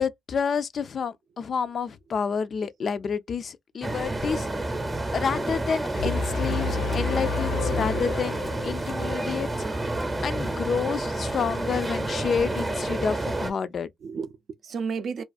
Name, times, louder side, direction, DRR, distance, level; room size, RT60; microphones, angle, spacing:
voice 1, 0.0-4.5 5.1-9.5 10.2-13.9, left 6 dB, 50° left, 0.3 m, -29 dB
sound 1, 3.8-13.5, right 2 dB, 20° right, 0.7 m, -29 dB
sound 2, 6.0-9.2, left 4 dB, 85° left, 0.6 m, -30 dB
voice 2, 6.5-6.8 7.7-8.3 8.6-8.7 14.0-15.2, right 5 dB, 55° right, 0.3 m, -34 dB
2.4 x 2.4 x 2.3 m
cardioid pair, 90°, 0 cm